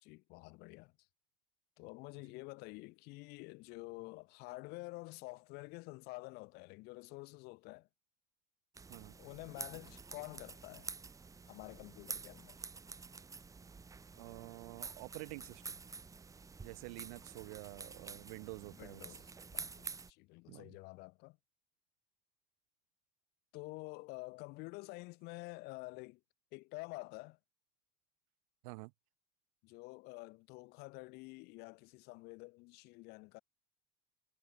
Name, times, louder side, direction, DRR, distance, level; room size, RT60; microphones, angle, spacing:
voice 1, 0.0-0.9 1.8-7.9 9.2-10.9 11.5-12.6 18.8-19.2 19.5-21.4 23.5-26.2 26.5-27.4 29.6-33.4, left 24 dB, 65° left, 1.9 m, -49 dB
sound 1, 8.7-20.1, right 4 dB, 20° right, 3.1 m, -49 dB
voice 2, 14.2-15.8 16.6-19.1 20.5-20.8 28.6-28.9, right 30 dB, 75° right, 2.9 m, -49 dB
supercardioid pair, 125°, 18 cm